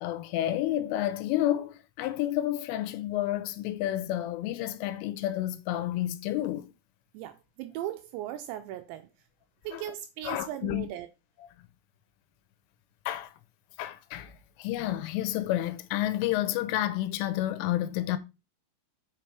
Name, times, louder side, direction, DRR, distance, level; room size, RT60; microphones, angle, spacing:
voice 1, 0.0-6.7 9.7-9.8 10.2-10.9 13.1-13.3 13.8-14.3 14.6-18.2, left 13 dB, 85° left, 3.3 m, -30 dB
voice 2, 7.1-9.1 9.6-11.1, right 13 dB, 80° right, 2.6 m, -38 dB
7.6 x 6.1 x 4.6 m
omnidirectional pair, 5.7 m